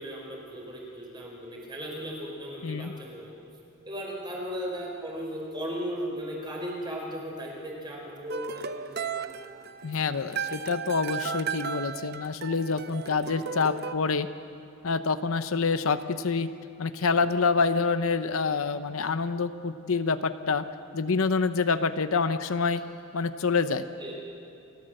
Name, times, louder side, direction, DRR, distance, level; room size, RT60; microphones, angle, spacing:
voice 1, 0.0-3.3 3.8-9.3 13.1-13.6 17.1-17.3 24.0-24.1, equal, 20° right, -2 dB, 4.7 m, -37 dB
sound 1, 8.3-13.9, right 6 dB, 45° right, 0.7 m, -35 dB
voice 2, 9.8-14.3 14.8-16.5 16.8-20.6 20.9-22.8 23.1-23.8, left 4 dB, 75° left, 11 dB, 0.7 m, -27 dB
29.0 x 14.5 x 7.7 m, 2.8 s
head